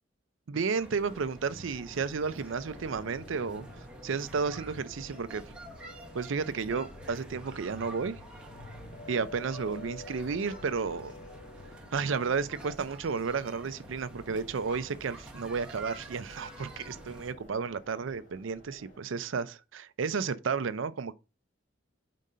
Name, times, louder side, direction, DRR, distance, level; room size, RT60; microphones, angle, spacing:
voice 1, 0.5-3.7 4.0-5.4 6.1-8.2 9.1-11.1 11.9-21.1, right 5 dB, 75° right, 0.5 m, -32 dB
sound 1, 0.7-19.0, equal, 65° left, 1.5 m, -55 dB
sound 2, 0.7-17.3, right 1 dB, 5° right, 0.9 m, -48 dB
sound 3, 4.9-11.8, left 3 dB, 45° left, 0.4 m, -50 dB
5.2 x 3.7 x 5.4 m
head